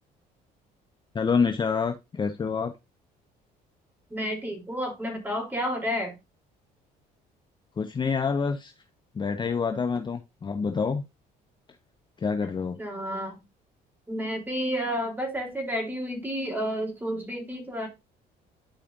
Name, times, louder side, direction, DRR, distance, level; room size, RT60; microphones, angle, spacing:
voice 1, 1.1-2.8 7.8-8.7 9.1-11.1 12.2-12.8, left 5 dB, 25° left, 0.8 m, -27 dB
voice 2, 4.1-6.2 12.4-12.5 12.8-13.4 14.1-17.9, equal, 10° right, 3.4 m, -31 dB
11.5 x 5.0 x 2.6 m
cardioid pair, 110°, 17 cm